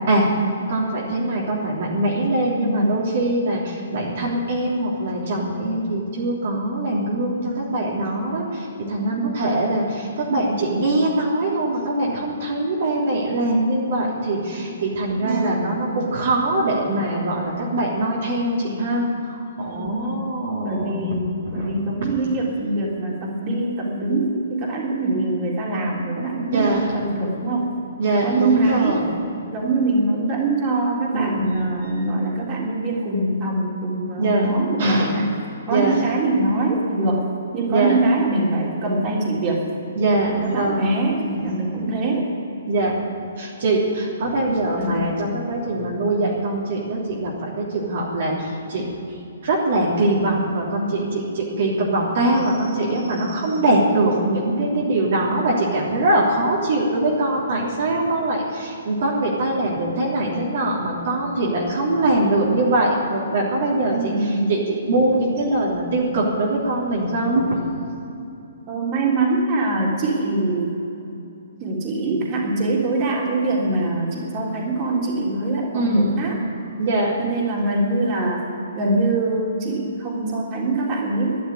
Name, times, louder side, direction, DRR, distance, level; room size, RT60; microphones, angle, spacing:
voice 1, 0.7-21.2 21.4-22.0 26.5-26.8 28.0-29.1 31.0-31.5 34.2-35.2 35.7-36.0 37.7-38.0 40.0-40.9 41.2-41.5 42.7-43.0 43.4-48.9 49.4-67.6 75.7-76.3 76.8-77.2, right 2 dB, 50° right, -4 dB, 3.3 m, -22 dB
voice 2, 2.5-2.9 9.1-9.4 15.1-15.6 19.7-20.3 20.6-27.7 28.2-29.0 29.5-35.3 35.7-39.7 40.4-42.3 44.8-45.1 63.9-64.5 68.7-70.8 71.6-76.3 77.2-81.4, right 2 dB, 30° right, -2 dB, 3.5 m, -23 dB
12.0 x 11.0 x 9.6 m, 2.8 s
figure-of-eight pair, 130°, 0 cm